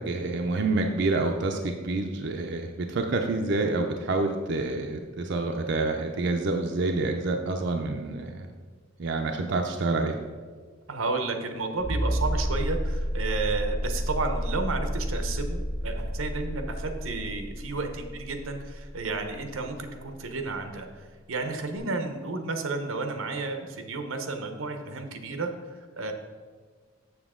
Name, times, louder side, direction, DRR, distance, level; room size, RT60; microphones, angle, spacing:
voice 1, 0.1-8.5 9.0-10.1, right 2 dB, 60° right, 3 dB, 0.5 m, -28 dB
voice 2, 10.9-20.9 21.3-26.1, right 3 dB, 90° right, 5 dB, 0.8 m, -32 dB
sound 1, 11.8-20.3 21.8-21.9, equal, 60° left, 1.2 m, -30 dB
7.2 x 6.7 x 3.7 m, 1.5 s
head